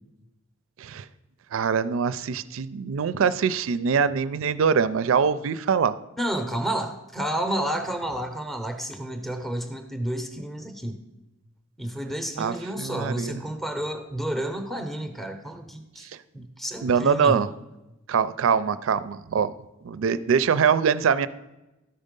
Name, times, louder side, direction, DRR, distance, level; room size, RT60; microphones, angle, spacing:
voice 1, 1.5-5.9 12.4-13.4 16.8-17.5 18.1-19.5 19.8-21.3, right 6 dB, 75° right, 15 dB, 0.4 m, -23 dB
voice 2, 6.2-11.0 11.8-16.1 16.3-17.4, right 1 dB, ahead, 6 dB, 0.6 m, -30 dB
13.0 x 5.4 x 5.2 m, 1.0 s
head